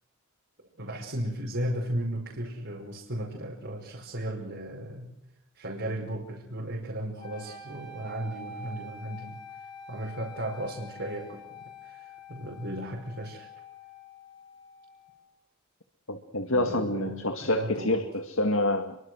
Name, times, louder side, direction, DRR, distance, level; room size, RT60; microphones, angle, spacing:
voice 1, 0.8-5.1 5.5-9.4 9.9-13.5 16.5-18.0, right 1 dB, 60° right, -1 dB, 5.5 m, -35 dB
sound 1, 7.2-15.3, left 2 dB, 20° left, 5.2 m, -46 dB
voice 2, 16.1-19.0, left 2 dB, 70° left, 7 dB, 2.1 m, -27 dB
29.0 x 23.5 x 6.4 m, 0.83 s
head